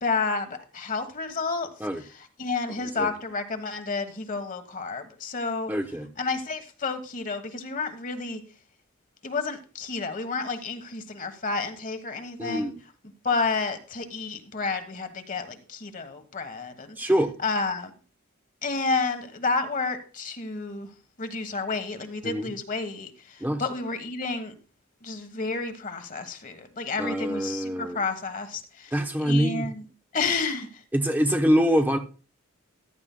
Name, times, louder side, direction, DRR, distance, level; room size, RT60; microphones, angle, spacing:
voice 1, 0.0-1.7 2.4-5.7 6.2-8.4 9.2-12.7 13.2-17.0 17.4-17.9 18.6-20.9 21.2-24.5 25.0-28.9 29.2-29.8 30.1-30.7, left 4 dB, 40° left, 8 dB, 1.2 m, -30 dB
voice 2, 2.8-3.1 5.7-6.1 12.4-12.8 17.0-17.3 22.2-22.5 23.4-23.6 27.0-28.0 28.9-29.7 30.9-32.0, equal, 10° right, 3 dB, 0.8 m, -25 dB
14.5 x 11.5 x 2.2 m, 0.35 s
head